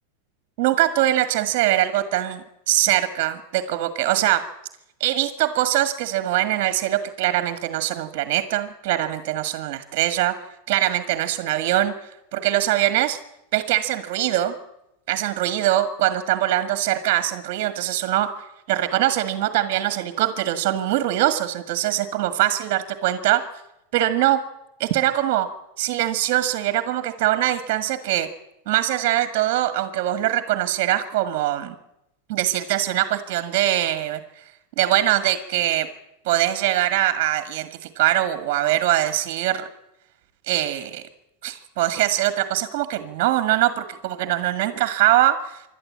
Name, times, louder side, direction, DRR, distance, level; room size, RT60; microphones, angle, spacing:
voice 1, 0.6-4.4 5.0-10.3 10.7-13.2 13.5-14.5 15.1-18.3 18.7-23.4 23.9-24.4 24.8-25.5 25.8-28.3 28.6-31.7 32.3-34.2 34.8-35.9 36.2-39.7 40.5-41.0 41.4-45.6, right 13 dB, 45° right, 11 dB, 1.7 m, -22 dB
26.5 x 12.0 x 8.6 m, 0.84 s
supercardioid pair, 165°, 0 cm